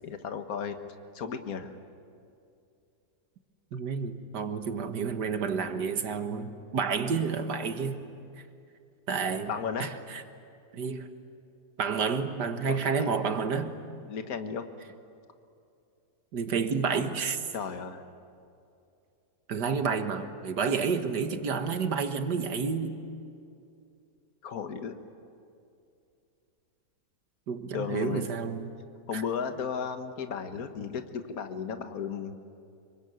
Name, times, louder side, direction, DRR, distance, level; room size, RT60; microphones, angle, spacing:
voice 1, 0.0-0.8 1.1-1.7 9.5-9.9 12.7-13.1 14.1-14.7 17.5-18.0 24.4-25.0 27.7-28.3 29.1-32.4, left 6 dB, 60° left, 7 dB, 1.8 m, -34 dB
voice 2, 3.7-8.0 9.1-9.5 9.8-10.2 10.7-11.1 11.8-13.7 16.3-17.4 19.5-23.0 27.5-28.7 29.1-29.2, right 5 dB, 80° right, 8 dB, 2.1 m, -30 dB
26.0 x 24.0 x 9.3 m, 2.6 s
omnidirectional pair, 1.8 m